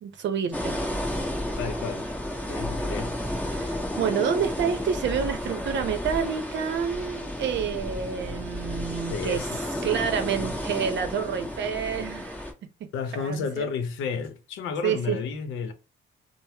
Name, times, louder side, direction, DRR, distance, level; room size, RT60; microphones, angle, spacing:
voice 1, 0.0-0.8 3.5-9.5 9.8-12.4 13.1-13.7 14.8-15.2, right 7 dB, 65° right, 0.7 m, -28 dB
sound 1, 0.5-12.5, left 1 dB, 5° left, 1.0 m, -32 dB
voice 2, 1.6-2.0 2.5-3.1 9.1-9.8 12.9-15.7, left 5 dB, 85° left, 0.7 m, -31 dB
3.3 x 2.0 x 2.8 m
cardioid pair, 90°, 20 cm